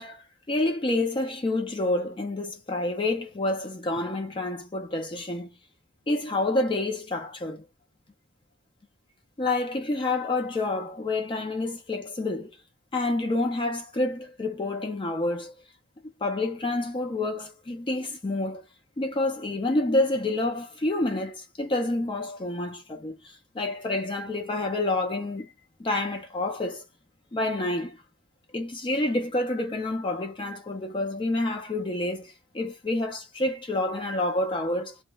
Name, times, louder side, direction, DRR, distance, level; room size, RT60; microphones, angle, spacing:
voice 1, 0.0-5.5 6.1-7.6 9.4-12.5 12.9-15.5 16.2-18.6 19.0-25.5 25.8-26.8 27.3-28.0 28.5-35.0, left 2 dB, 25° left, 0.4 m, -28 dB
2.8 x 2.0 x 2.2 m
head